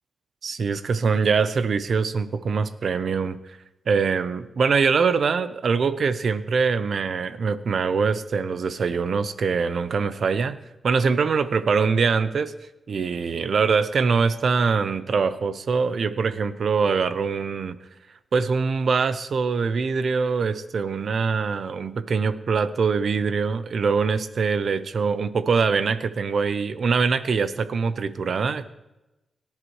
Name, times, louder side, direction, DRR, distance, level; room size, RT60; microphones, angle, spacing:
voice 1, 0.4-3.4 3.9-10.6 10.8-12.5 12.9-17.8 18.3-28.7, right 5 dB, 65° right, 13 dB, 0.7 m, -23 dB
22.5 x 10.5 x 3.2 m, 0.99 s
cardioid pair, 85°, 0 cm